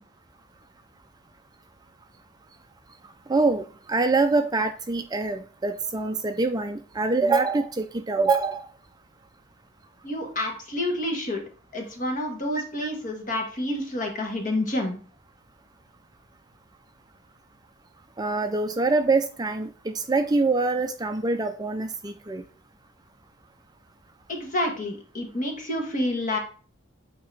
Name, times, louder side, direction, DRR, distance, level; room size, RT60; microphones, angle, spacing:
voice 1, 3.3-8.7 12.8-12.9 18.2-22.4, right 3 dB, 20° right, 8 dB, 0.4 m, -25 dB
voice 2, 10.0-11.4 11.7-15.0 24.3-26.4, left 1 dB, 40° left, 3 dB, 1.6 m, -28 dB
8.6 x 2.9 x 4.8 m, 0.40 s
head